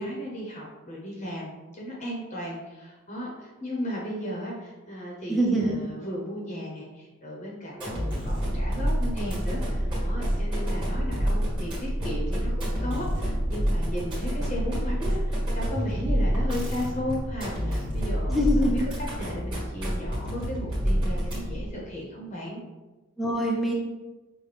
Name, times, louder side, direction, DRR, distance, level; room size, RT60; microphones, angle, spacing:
voice 1, 0.0-18.8 19.2-22.6, equal, 35° left, -3 dB, 0.7 m, -35 dB
voice 2, 5.3-5.7 18.3-18.8 23.2-23.7, equal, ahead, -3 dB, 0.6 m, -24 dB
sound 1, 7.7-21.7, equal, 20° right, 1.5 m, -28 dB
5.7 x 2.1 x 3.2 m, 1.1 s
head